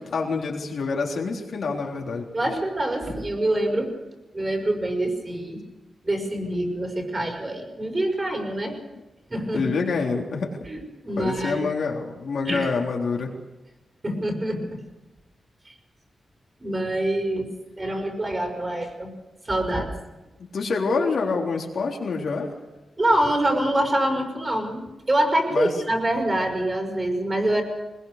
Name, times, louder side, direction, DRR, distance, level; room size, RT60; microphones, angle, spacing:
voice 1, 0.0-2.3 9.5-10.6 11.2-13.3 20.5-22.5 25.5-25.7, left 4 dB, 75° left, 0 dB, 3.7 m, -26 dB
voice 2, 2.3-4.0 4.3-5.6 6.0-8.7 9.3-9.7 10.7-11.6 12.5-12.7 14.0-14.8 15.7-15.8 16.6-19.1 19.4-19.9 23.0-27.6, right 1 dB, 25° right, 2 dB, 5.6 m, -25 dB
21.5 x 21.0 x 6.8 m, 1.1 s
wide cardioid pair, 100°, 0 cm